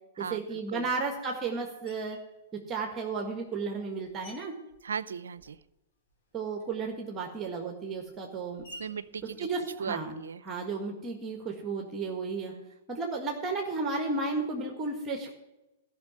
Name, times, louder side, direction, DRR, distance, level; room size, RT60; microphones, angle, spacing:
voice 1, 0.2-2.2 2.5-4.5 6.3-8.6 9.4-10.1 10.4-12.5 12.9-15.3, right 4 dB, 25° right, 3 dB, 1.6 m, -33 dB
Screech, 1.9-2.3 3.1-5.8 6.1-10.4, equal, 70° left, 3.9 m, -55 dB
voice 2, 4.8-5.6 8.8-9.5 9.8-10.4 12.5-12.7, right 6 dB, 80° right, 18 dB, 0.5 m, -37 dB
13.5 x 5.8 x 7.5 m, 1.0 s
hypercardioid pair, 110°, 0 cm